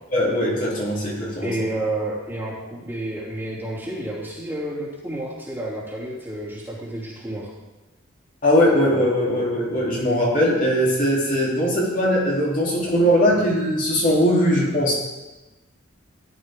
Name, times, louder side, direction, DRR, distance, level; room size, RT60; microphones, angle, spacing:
voice 1, 0.1-1.5 8.4-14.9, equal, 40° left, -5 dB, 3.3 m, -20 dB
voice 2, 1.4-7.5, right 1 dB, 10° right, -6 dB, 2.8 m, -30 dB
15.0 x 11.5 x 3.7 m, 1.1 s
head